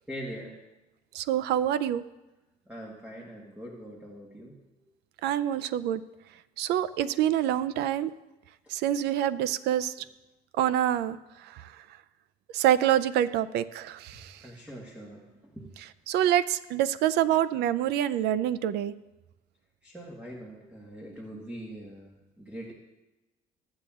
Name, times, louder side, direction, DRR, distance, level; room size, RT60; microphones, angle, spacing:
voice 1, 0.1-0.6 2.7-4.6 8.6-8.7 14.4-15.7 19.8-22.7, equal, 5° right, -2 dB, 1.3 m, -42 dB
voice 2, 1.1-2.0 5.2-6.0 6.6-8.1 8.7-9.9 10.6-11.7 12.5-14.4 16.1-18.9, right 11 dB, 75° right, 15 dB, 0.4 m, -26 dB
15.0 x 8.6 x 2.4 m, 1.0 s
cardioid pair, 110°, 17 cm